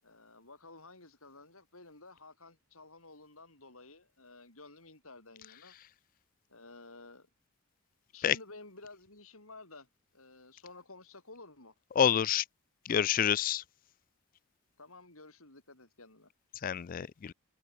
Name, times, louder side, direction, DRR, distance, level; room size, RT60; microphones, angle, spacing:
voice 1, 0.0-5.7 6.5-7.3 8.1-9.9 10.1-11.7 14.8-16.3, left 2 dB, 70° left, 7.7 m, -53 dB
voice 2, 12.0-12.4 12.9-13.6 16.6-17.3, left 8 dB, 40° left, 0.3 m, -28 dB
head